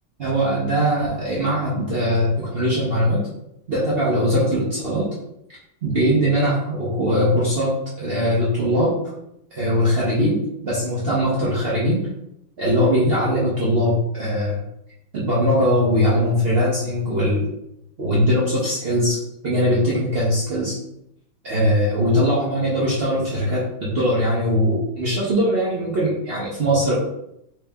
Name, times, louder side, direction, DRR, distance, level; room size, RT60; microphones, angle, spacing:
voice 1, 0.2-3.2 3.7-5.1 5.8-7.7 8.0-9.0 9.5-12.0 12.6-14.6 15.1-17.5 18.0-20.8 21.4-27.0, equal, 90° right, -7 dB, 0.5 m, -21 dB
3.4 x 3.0 x 3.4 m, 0.80 s
omnidirectional pair, 2.3 m